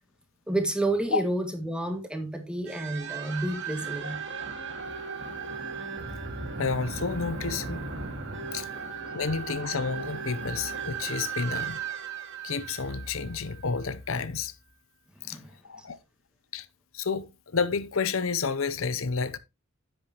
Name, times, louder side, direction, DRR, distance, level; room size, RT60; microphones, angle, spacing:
voice 1, 0.5-4.2 15.3-15.9, right 1 dB, 5° right, 1.9 m, -30 dB
sound 1, 2.7-13.9, right 5 dB, 60° right, 2.0 m, -36 dB
voice 2, 6.6-7.8 8.5-8.7 9.1-11.8 12.4-14.5 15.3-15.4 15.6-16.0 16.5-16.7 16.9-19.4, left 5 dB, 70° left, 0.8 m, -30 dB
10.0 x 8.8 x 3.0 m
head